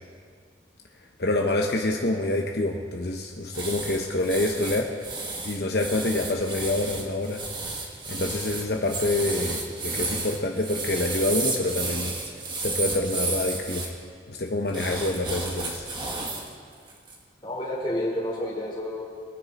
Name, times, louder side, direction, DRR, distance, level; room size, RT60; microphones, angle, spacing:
voice 1, 1.2-4.9 5.4-7.4 8.1-12.2 12.6-13.9 14.3-15.9, left 2 dB, 60° left, 1 dB, 0.9 m, -27 dB
sound 1, 3.5-13.9 14.7-16.5 16.9-17.2, right 3 dB, 25° right, 1.5 m, -32 dB
voice 2, 17.4-19.0, left 1 dB, 25° left, -5 dB, 3.2 m, -29 dB
22.5 x 9.8 x 4.2 m, 2.1 s
head